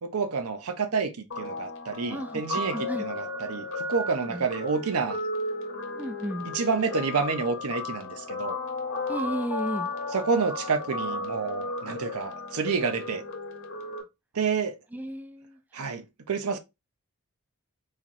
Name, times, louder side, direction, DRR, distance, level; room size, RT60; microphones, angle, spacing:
voice 1, 0.0-5.2 6.5-8.6 10.1-13.2 14.3-14.8 15.7-16.6, right 5 dB, 80° right, 0.7 m, -29 dB
Guitar, 1.3-14.0, left 2 dB, 60° left, 0.9 m, -34 dB
voice 2, 2.1-2.4 2.7-3.1 4.3-4.5 5.9-6.5 9.1-9.9 14.9-15.9, right 1 dB, 5° right, 0.3 m, -34 dB
4.1 x 3.0 x 2.6 m
head